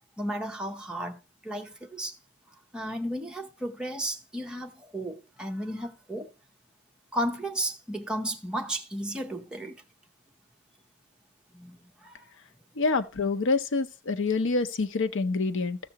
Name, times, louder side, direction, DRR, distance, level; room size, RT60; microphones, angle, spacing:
voice 1, 0.2-2.2 2.7-6.3 7.1-9.8 11.5-12.2, right 1 dB, 5° right, 0.8 m, -34 dB
voice 2, 12.8-15.8, left 3 dB, 60° left, 0.7 m, -27 dB
14.0 x 6.7 x 2.9 m
head